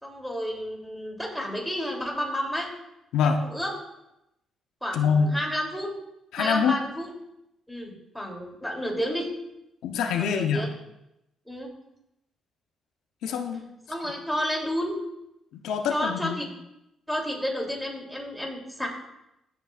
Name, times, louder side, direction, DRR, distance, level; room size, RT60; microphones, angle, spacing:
voice 1, 0.0-2.7 3.2-3.7 4.8-5.9 6.4-7.1 7.7-9.3 10.2-10.7 11.5-11.7 13.9-15.0 15.9-16.4 17.1-18.9, equal, ahead, -1 dB, 2.9 m, -31 dB
voice 2, 3.1-3.4 4.9-5.4 6.3-6.8 9.8-10.6 13.2-13.6 15.5-16.4, left 6 dB, 85° left, 5 dB, 0.7 m, -25 dB
15.0 x 8.3 x 2.4 m, 0.86 s
cardioid pair, 90°, 0 cm